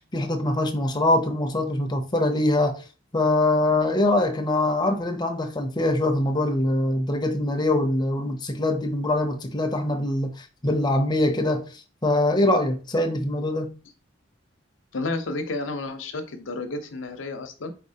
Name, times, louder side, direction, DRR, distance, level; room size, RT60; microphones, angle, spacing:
voice 1, 0.0-2.8 3.1-11.7 12.0-13.7, left 1 dB, 20° left, 0.6 m, -23 dB
voice 2, 14.9-17.7, left 2 dB, 85° left, 0.8 m, -31 dB
4.2 x 4.1 x 2.8 m
head